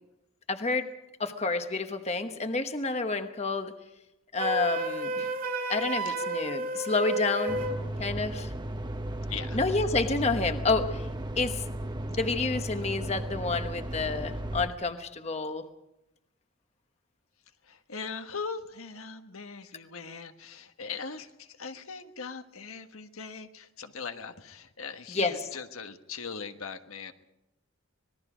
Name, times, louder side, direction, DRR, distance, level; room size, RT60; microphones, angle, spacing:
voice 1, 0.5-0.9 1.2-3.7 4.3-5.3 5.7-7.6 8.0-8.5 9.5-11.1 11.4-11.6 12.1-15.7 25.1-25.3, left 3 dB, 30° left, 7 dB, 1.1 m, -29 dB
Wind instrument woodwind instrument, 4.4-7.8, right 2 dB, 40° right, 2.4 m, -32 dB
sound 1, 7.5-14.7, right 1 dB, 20° right, 1.0 m, -35 dB
voice 2, 9.3-9.6 17.6-27.1, left 5 dB, 85° left, 7 dB, 1.4 m, -40 dB
26.0 x 20.0 x 5.1 m, 0.89 s
head